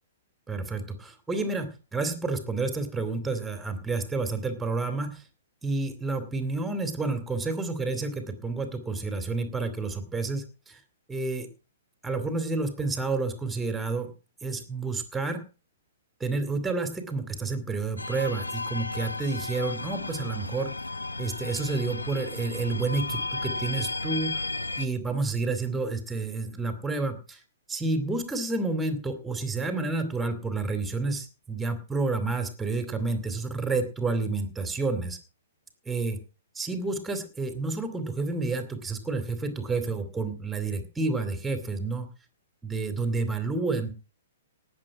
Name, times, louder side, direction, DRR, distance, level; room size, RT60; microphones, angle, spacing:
voice 1, 0.5-5.2 5.6-10.8 11.1-11.5 12.0-14.1 14.4-15.4 16.2-20.7 21.2-24.3 24.8-27.4 27.7-35.2 35.9-36.2 36.5-42.1 42.6-43.9, right 3 dB, 10° right, 8 dB, 2.5 m, -30 dB
sound 1, 18.0-24.9, left 3 dB, 85° left, 1.0 m, -34 dB
18.0 x 7.4 x 4.9 m, 0.34 s
figure-of-eight pair, 120°, 0 cm